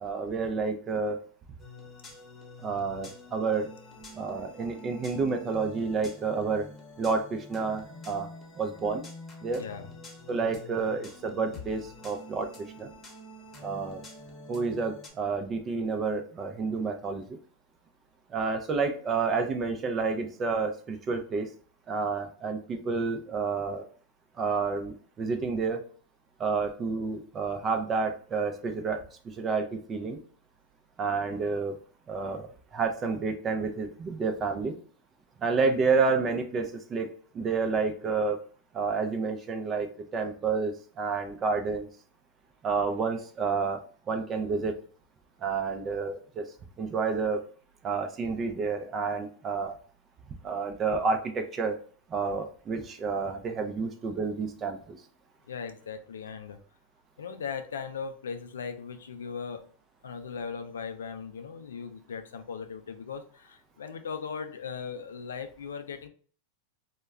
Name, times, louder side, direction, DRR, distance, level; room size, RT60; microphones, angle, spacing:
voice 1, 0.0-1.2 2.6-3.7 4.1-6.7 7.0-8.3 8.5-9.0 9.4-9.6 10.3-12.9 13.6-14.0 14.5-17.4 18.3-21.5 21.9-23.8 24.4-25.8 26.4-30.2 31.0-31.8 32.1-34.8 35.4-38.4 38.7-41.9 42.6-44.7 45.4-46.5 46.8-47.4 47.8-49.8 50.4-51.8 52.1-55.0, right 4 dB, 30° right, 7 dB, 0.5 m, -30 dB
sound 1, 1.6-15.1, left 2 dB, 25° left, 0.9 m, -47 dB
voice 2, 9.6-9.9 55.5-56.6 57.2-59.7 60.0-66.1, left 6 dB, 85° left, 9 dB, 0.4 m, -38 dB
2.2 x 2.1 x 3.4 m, 0.43 s
hypercardioid pair, 110°, 0 cm